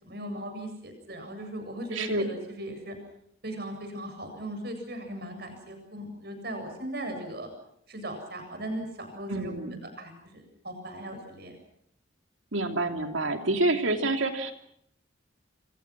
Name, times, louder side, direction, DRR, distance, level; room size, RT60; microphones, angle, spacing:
voice 1, 0.0-2.9 3.4-7.5 7.9-9.5 10.0-11.6, right 1 dB, 55° right, 5 dB, 7.8 m, -38 dB
voice 2, 1.9-2.2 9.3-9.8 12.5-14.5, right 2 dB, 80° right, 5 dB, 3.2 m, -27 dB
28.5 x 25.5 x 6.2 m, 0.70 s
head